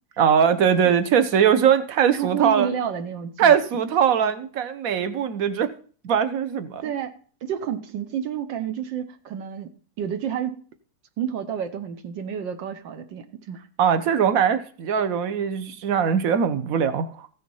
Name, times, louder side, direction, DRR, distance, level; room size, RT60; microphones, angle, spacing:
voice 1, 0.2-2.7 3.4-5.7 6.0-6.8 13.8-17.3, right 8 dB, 50° right, 11 dB, 1.3 m, -21 dB
voice 2, 2.1-3.5 6.8-7.1 7.4-10.6 11.2-13.6, right 8 dB, 70° right, 9 dB, 1.6 m, -30 dB
15.0 x 6.4 x 5.4 m, 0.42 s
omnidirectional pair, 2.1 m